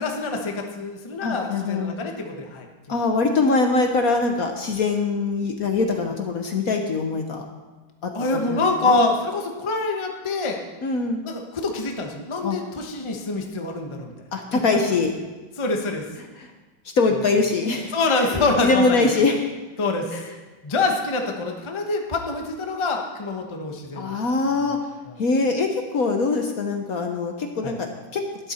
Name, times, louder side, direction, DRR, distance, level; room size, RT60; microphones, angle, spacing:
voice 1, 0.0-2.7 5.9-6.0 8.1-10.6 11.2-14.1 15.6-16.0 17.9-19.2 19.8-20.2 20.6-24.2 25.1-25.2 27.6-27.8, left 3 dB, 20° left, 2 dB, 0.8 m, -25 dB
voice 2, 1.2-2.0 2.9-7.4 8.0-8.9 10.8-11.2 12.4-12.6 14.3-15.1 16.4-16.5 16.9-17.9 18.2-19.4 20.1-20.2 23.9-24.8 25.2-28.2, left 3 dB, 55° left, 4 dB, 1.2 m, -23 dB
12.5 x 11.0 x 4.4 m, 1.2 s
omnidirectional pair, 2.1 m